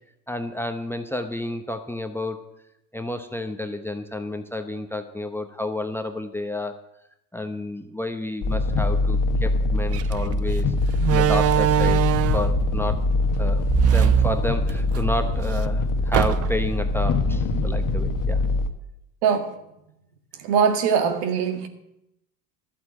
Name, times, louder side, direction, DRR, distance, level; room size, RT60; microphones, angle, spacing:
voice 1, 0.3-2.4 2.9-6.8 7.3-10.7 11.1-12.0 12.3-13.1 13.4-18.4, left 1 dB, 5° left, 1.0 m, -30 dB
sound 1, 8.4-18.7, left 2 dB, 40° left, 1.4 m, -23 dB
Slam, 9.9-10.1 11.0-12.6 13.6-15.0 15.4-15.5 16.1-16.7, right 10 dB, 35° right, 0.5 m, -21 dB
voice 2, 19.2-19.6 20.4-21.7, right 7 dB, 65° right, 1.9 m, -22 dB
12.0 x 8.2 x 7.5 m
hypercardioid pair, 90°, 47 cm